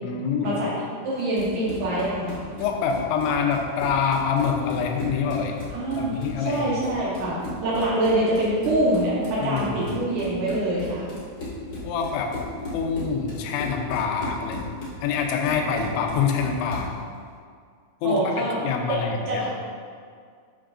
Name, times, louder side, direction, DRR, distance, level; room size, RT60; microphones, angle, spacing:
voice 1, 0.0-0.5 2.6-5.6 5.9-6.6 9.4-9.8 11.8-12.3 12.7-14.6 15.0-16.9 18.0-19.4, left 6 dB, 80° left, 2 dB, 2.9 m, -26 dB
voice 2, 1.0-2.4 5.7-11.1 18.0-18.6 18.9-19.5, right 1 dB, 85° right, -8 dB, 1.7 m, -25 dB
Run, 1.1-17.0, left 1 dB, 60° left, 1.0 m, -36 dB
9.7 x 6.2 x 2.5 m, 2.1 s
omnidirectional pair, 5.4 m